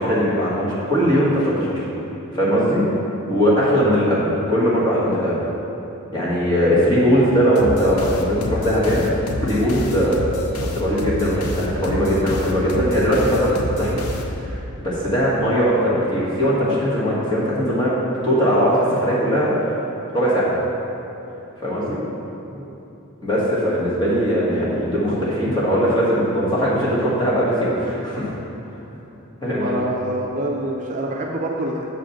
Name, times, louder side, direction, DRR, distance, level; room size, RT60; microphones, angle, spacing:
voice 1, 0.0-1.7 2.3-2.8 3.3-5.4 6.1-10.2 10.6-14.0 14.4-18.0 18.2-19.5 20.1-20.5 21.6-22.0 23.2-28.3 29.4-29.7, equal, 20° left, -8 dB, 1.8 m, -20 dB
sound 1, 7.6-14.7, left 1 dB, 80° left, 0.7 m, -28 dB
voice 2, 22.5-22.8 29.4-31.9, right 1 dB, 35° right, -1 dB, 0.5 m, -26 dB
7.3 x 5.1 x 5.8 m, 2.9 s
head